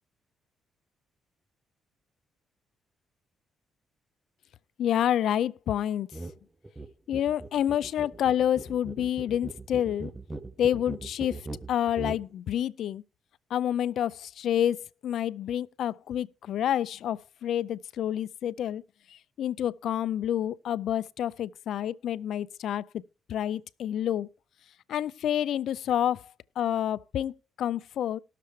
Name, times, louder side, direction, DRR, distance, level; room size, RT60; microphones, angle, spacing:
voice 1, 4.8-6.1 7.1-10.1 10.6-13.0 13.5-18.8 19.1-22.8 23.3-24.3 24.9-28.2, left 10 dB, 70° left, 0.4 m, -28 dB
sound 1, 6.1-6.4 6.6-12.3, right 2 dB, 15° right, 0.7 m, -40 dB
18.5 x 6.7 x 3.2 m
cardioid pair, 90°, 0 cm